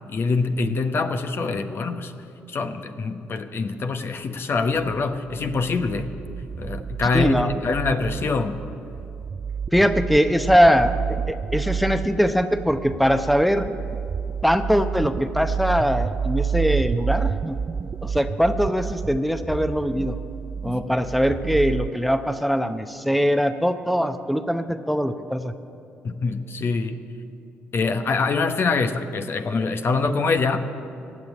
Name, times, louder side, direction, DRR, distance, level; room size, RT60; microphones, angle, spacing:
voice 1, 0.1-2.1 2.5-6.2 6.6-8.6 20.7-20.9 26.0-27.0 27.7-30.6, left 4 dB, 50° left, 8 dB, 1.0 m, -25 dB
sound 1, 5.3-21.9, right 6 dB, 35° right, 0.3 m, -30 dB
voice 2, 7.1-7.5 9.7-10.9 11.3-13.7 14.4-17.6 18.0-20.2 20.6-25.5, equal, ahead, 9 dB, 0.8 m, -21 dB
16.0 x 7.2 x 9.7 m, 2.8 s
supercardioid pair, 55°, 5 cm